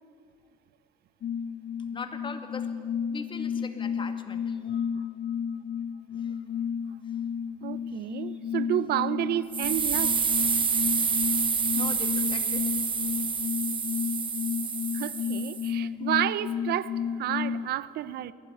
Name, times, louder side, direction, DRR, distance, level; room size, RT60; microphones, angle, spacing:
sound 1, 1.2-17.7, left 7 dB, 50° left, 0.6 m, -32 dB
voice 1, 1.9-2.7 3.1-4.6 6.2-6.4 7.9-8.1 11.7-12.7, left 4 dB, 30° left, 2.2 m, -40 dB
voice 2, 7.6-10.3 14.9-18.3, right 13 dB, 70° right, 0.7 m, -30 dB
sound 2, 9.5-15.7, right 6 dB, 30° right, 1.0 m, -28 dB
21.5 x 16.0 x 9.9 m
cardioid pair, 110°, 17 cm